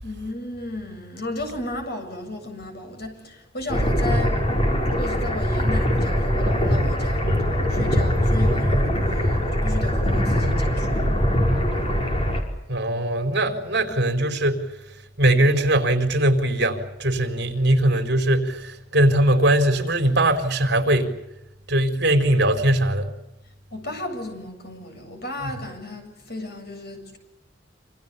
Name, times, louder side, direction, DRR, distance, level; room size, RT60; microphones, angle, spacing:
voice 1, 0.0-7.2 7.7-11.0 23.7-27.2, left 1 dB, 55° left, 7.9 m, -34 dB
sound 1, 3.7-12.4, equal, 30° left, 5.3 m, -22 dB
voice 2, 12.7-14.7 15.2-21.1 21.7-23.1 25.4-25.6, right 1 dB, 60° right, 4.4 m, -21 dB
27.5 x 27.5 x 7.0 m
head